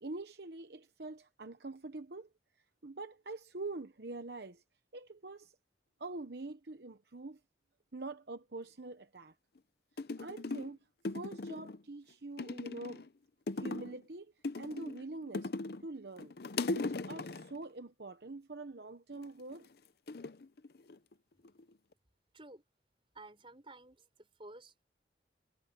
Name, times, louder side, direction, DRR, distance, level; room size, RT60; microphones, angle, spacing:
voice 1, 0.0-2.3 2.8-4.6 4.9-5.6 6.0-7.4 7.9-9.3 10.2-10.8 11.1-13.1 13.5-15.5 15.8-16.4 16.7-19.7, right 2 dB, 65° right, 1.0 m, -45 dB
sound 1, 9.6-9.7 10.0-10.7 11.0-11.8 12.4-13.1 13.5-14.0 14.4-15.9 16.2-17.6 19.2-19.6 20.1-21.1 21.4-21.9, left 3 dB, 55° left, 0.6 m, -39 dB
voice 2, 23.1-24.8, right 2 dB, 30° right, 5.8 m, -53 dB
head